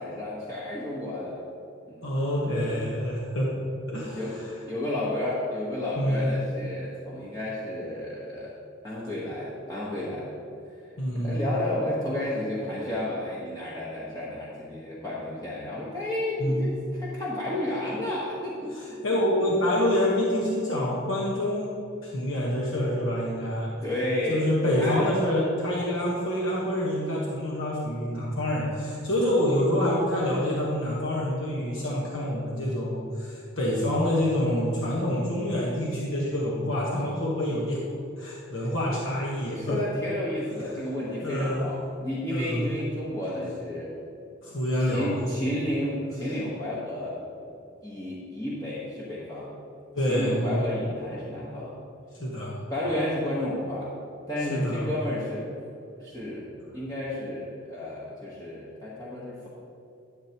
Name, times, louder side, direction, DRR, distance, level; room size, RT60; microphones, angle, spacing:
voice 1, 0.0-1.4 1.9-2.1 4.1-4.4 4.7-8.5 8.8-10.3 11.1-19.0 23.8-24.5 24.8-25.1 38.6-38.7 39.4-43.9 44.8-47.2 47.8-49.5 50.1-51.7 52.7-53.9 54.3-55.7 56.0-56.5 56.7-59.5, left 1 dB, 20° left, -8 dB, 1.2 m, -32 dB
voice 2, 2.0-3.5 3.9-4.5 6.0-6.3 11.0-11.5 16.4-16.7 18.7-21.7 22.0-23.7 24.3-37.8 38.2-39.8 41.2-41.7 42.3-42.7 44.4-45.4 49.9-50.6 52.2-52.5 54.5-54.9, left 1 dB, 70° left, -5 dB, 1.3 m, -27 dB
11.5 x 7.5 x 3.0 m, 2.7 s
head